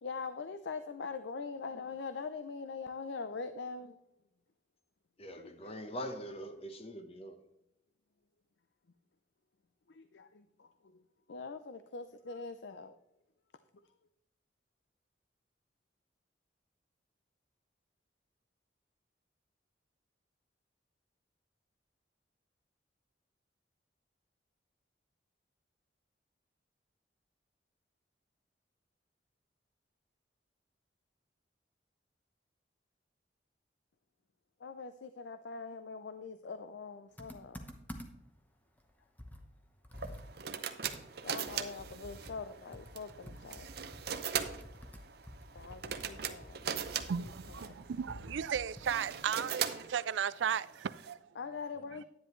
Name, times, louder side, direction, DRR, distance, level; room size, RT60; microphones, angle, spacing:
voice 1, 0.0-4.0 5.4-6.0 9.9-11.0 11.3-13.0 13.8-13.9 34.6-37.7 41.2-43.7 45.5-46.6 47.0-47.7 51.4-52.0, left 4 dB, 75° left, 0.5 m, -43 dB
voice 2, 5.2-7.4, equal, 35° left, 1.0 m, -43 dB
Computer keyboard, 37.2-38.4 38.8-38.9 39.2-42.5 42.7-49.2, left 1 dB, 10° left, 0.9 m, -50 dB
sound 1, 39.9-51.1, right 8 dB, 60° right, 0.7 m, -40 dB
voice 3, 47.1-51.2, right 8 dB, 85° right, 0.4 m, -35 dB
10.0 x 9.8 x 3.1 m
head